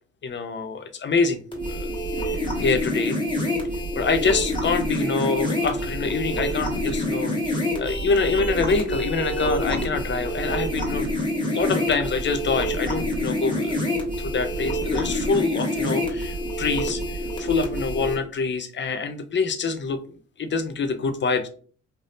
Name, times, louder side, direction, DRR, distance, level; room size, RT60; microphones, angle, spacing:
voice 1, 0.2-1.4 1.7-1.9 2.6-3.2 3.9-11.1 11.5-13.8 14.2-20.0 20.4-21.5, left 4 dB, 40° left, 9 dB, 0.6 m, -25 dB
sound 1, 1.5-18.2, equal, 15° left, 1.3 m, -27 dB
3.4 x 2.6 x 2.6 m, 0.41 s
cardioid pair, 90°, 30 cm